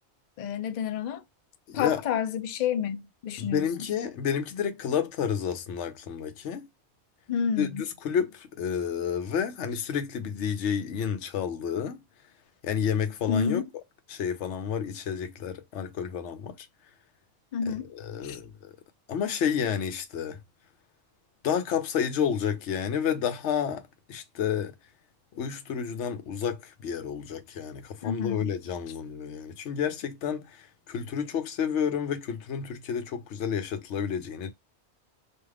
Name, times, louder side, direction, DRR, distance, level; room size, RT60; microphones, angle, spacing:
voice 1, 0.4-1.2 1.7-3.7 7.3-7.8 13.3-13.6 17.5-17.9 18.2-18.4 28.0-28.5, left 7 dB, 60° left, 0.5 m, -29 dB
voice 2, 1.7-2.0 3.4-6.7 7.6-12.0 12.6-13.6 14.1-16.7 17.7-18.7 19.1-20.4 21.4-24.7 25.3-34.5, left 7 dB, 85° left, 0.9 m, -30 dB
2.5 x 2.3 x 3.2 m
omnidirectional pair, 1.2 m